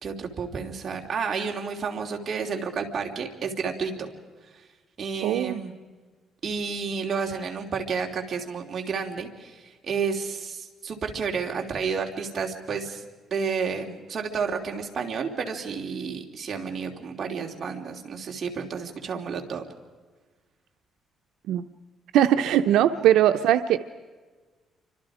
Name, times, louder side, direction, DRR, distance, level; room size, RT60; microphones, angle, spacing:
voice 1, 0.0-4.1 5.0-5.7 6.4-13.0 13.3-19.6 22.9-23.0, right 5 dB, 40° right, 2 dB, 3.1 m, -31 dB
voice 2, 5.2-5.6 21.5-21.6 22.1-23.8, right 11 dB, 90° right, 8 dB, 0.8 m, -20 dB
29.0 x 25.5 x 5.0 m, 1.4 s
cardioid pair, 135°, 0 cm